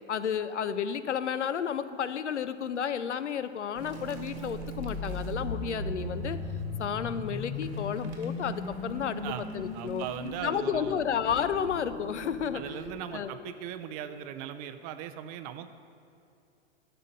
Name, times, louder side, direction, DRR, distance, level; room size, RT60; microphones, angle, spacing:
voice 1, 0.1-6.4 6.8-9.2 9.5-10.1 10.4-12.6 13.1-13.3, left 8 dB, 85° left, 13 dB, 0.5 m, -32 dB
sound 1, 3.7-13.0, right 7 dB, 70° right, 1.7 m, -44 dB
sound 2, 4.4-14.3, left 5 dB, 40° left, 0.8 m, -39 dB
voice 2, 9.7-11.0 12.5-15.7, right 10 dB, 35° right, 10 dB, 0.5 m, -39 dB
11.0 x 3.8 x 7.6 m, 2.6 s
figure-of-eight pair, 105°, 34 cm